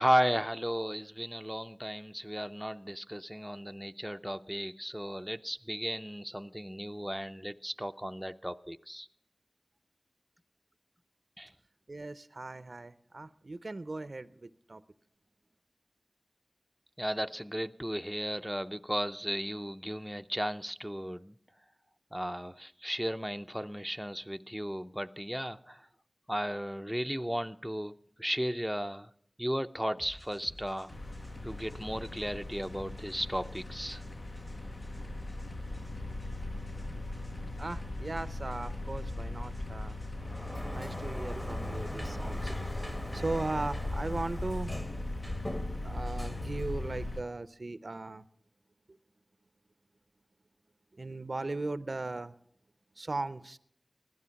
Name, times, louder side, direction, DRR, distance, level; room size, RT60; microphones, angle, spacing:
voice 1, 0.0-9.1 11.4-11.5 17.0-21.4 22.1-25.9 26.3-29.1 29.4-30.9 31.4-34.0, equal, 5° right, 0.5 m, -35 dB
voice 2, 11.9-14.8 37.6-40.0 40.7-42.9 43.1-44.7 45.8-48.2 51.0-52.3 53.0-53.6, right 2 dB, 70° right, 0.5 m, -38 dB
sound 1, 30.0-44.7, left 1 dB, 85° left, 6.0 m, -51 dB
sound 2, 30.9-47.2, left 2 dB, 60° left, 0.8 m, -39 dB
Sliding door, 40.1-47.3, equal, 30° left, 1.5 m, -41 dB
16.0 x 12.5 x 5.8 m
wide cardioid pair, 50°, 0 cm